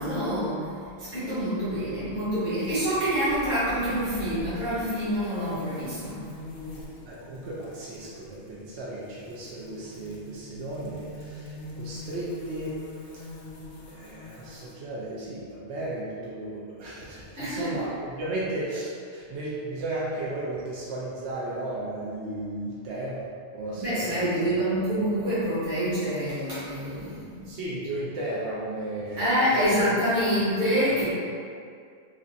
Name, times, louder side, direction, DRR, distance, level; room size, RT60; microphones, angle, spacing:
voice 1, 0.0-6.2 17.4-17.8 23.8-27.5 29.2-31.1, equal, 50° right, -13 dB, 1.1 m, -27 dB
sound 1, 2.6-14.7, left 2 dB, 70° left, 0.8 m, -44 dB
voice 2, 7.0-12.8 13.0-13.3 13.9-24.6 27.4-30.1 30.9-31.1, right 1 dB, 75° right, -7 dB, 0.8 m, -35 dB
3.1 x 2.4 x 2.5 m, 2.3 s
omnidirectional pair, 1.2 m